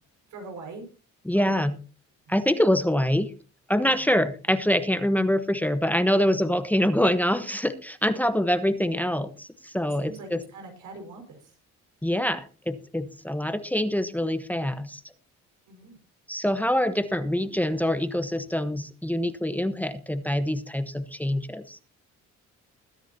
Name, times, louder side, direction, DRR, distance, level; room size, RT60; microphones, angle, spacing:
voice 1, 0.3-0.8 1.3-1.7 2.3-2.4 3.8-4.1 9.9-11.6 14.4-14.9 15.7-16.0, right 3 dB, 80° right, 4 dB, 5.5 m, -43 dB
voice 2, 1.3-1.7 2.3-3.3 3.7-10.4 12.0-15.0 16.3-21.8, equal, 5° left, 10 dB, 1.1 m, -25 dB
21.5 x 10.0 x 2.8 m, 0.35 s
cardioid pair, 90°, 30 cm